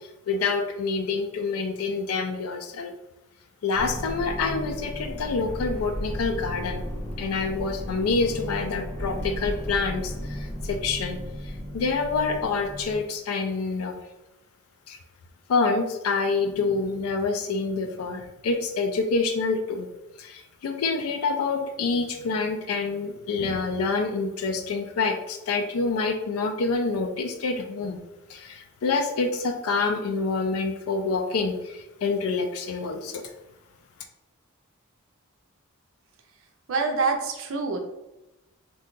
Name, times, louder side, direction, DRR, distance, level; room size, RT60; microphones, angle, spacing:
voice 1, 0.3-2.9 3.6-6.8 7.2-11.2 11.4-14.0 14.9-15.0 15.5-19.9 20.2-28.0 28.3-33.2, left 4 dB, 80° left, 6 dB, 0.4 m, -27 dB
sound 1, 3.7-13.0, equal, 5° left, 0.9 m, -34 dB
voice 2, 36.7-37.8, right 4 dB, 65° right, 4 dB, 0.5 m, -25 dB
2.6 x 2.3 x 3.7 m, 0.95 s
head